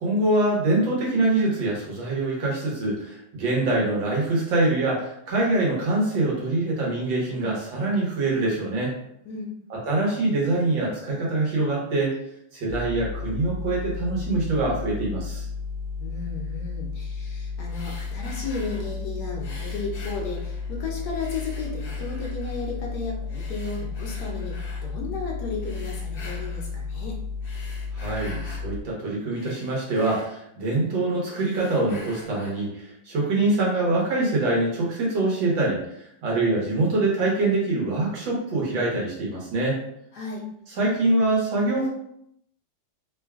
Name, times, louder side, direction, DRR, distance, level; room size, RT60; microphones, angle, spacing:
voice 1, 0.0-9.0 9.7-12.1 12.5-15.5 27.9-35.8 36.2-39.8 40.8-41.9, right 2 dB, 80° right, -3 dB, 1.8 m, -24 dB
sound 1, 12.7-28.8, left 4 dB, 85° left, 0.6 m, -33 dB
voice 2, 16.0-27.2 40.1-40.4, left 4 dB, 65° left, -1 dB, 1.1 m, -34 dB
sound 2, 17.7-19.0 19.4-20.8 21.2-22.7 23.3-24.9 25.6-26.7 27.3-28.7 29.1-30.9 31.2-32.7, left 2 dB, 45° left, 0.7 m, -46 dB
3.8 x 2.3 x 3.4 m, 0.75 s
omnidirectional pair, 2.0 m